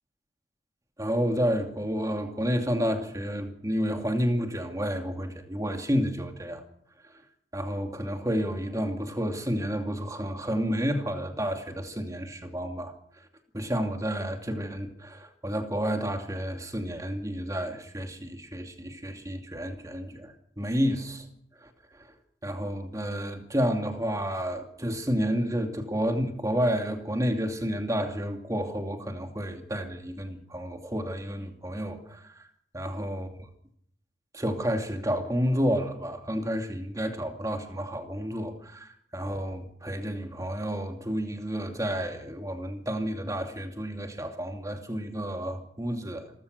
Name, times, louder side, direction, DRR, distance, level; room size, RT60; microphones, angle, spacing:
voice 1, 1.0-6.6 7.0-7.2 7.5-13.3 13.5-21.3 21.6-22.1 22.4-32.5 32.7-33.3 34.3-46.3, equal, 15° right, 2.5 m, -30 dB
27.0 x 14.5 x 6.8 m
head